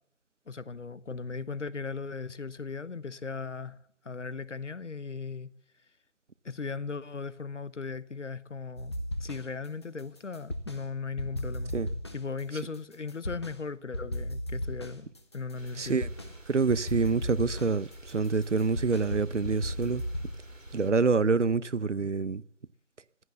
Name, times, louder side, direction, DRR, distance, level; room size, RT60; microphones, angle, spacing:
voice 1, 0.5-3.8 4.0-5.5 6.4-8.9 9.2-11.7 12.1-15.1 15.3-16.0, left 4 dB, 65° left, 1.0 m, -37 dB
sound 1, 8.8-9.7 10.0-10.9 11.2-13.6 13.9-16.4 16.7-20.3, equal, 20° left, 1.2 m, -36 dB
sound 2, 15.5-20.9, right 1 dB, 85° right, 4.1 m, -48 dB
voice 2, 15.7-16.1 16.5-20.0 20.7-22.4, right 4 dB, 65° right, 0.9 m, -27 dB
16.0 x 11.0 x 7.9 m
figure-of-eight pair, 165°, 38 cm